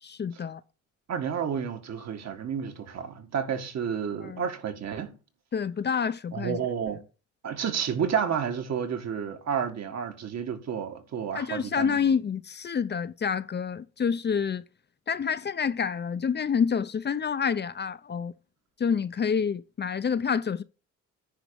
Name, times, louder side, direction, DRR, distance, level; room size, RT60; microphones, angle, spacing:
voice 1, 0.0-0.6 4.2-4.5 5.5-6.6 11.3-14.6 15.1-18.3 18.8-20.6, left 6 dB, 35° left, 0.6 m, -28 dB
voice 2, 1.1-5.1 6.3-7.0 7.4-12.0, right 7 dB, 60° right, 1.9 m, -31 dB
10.0 x 3.7 x 6.9 m
cardioid pair, 90°, 30 cm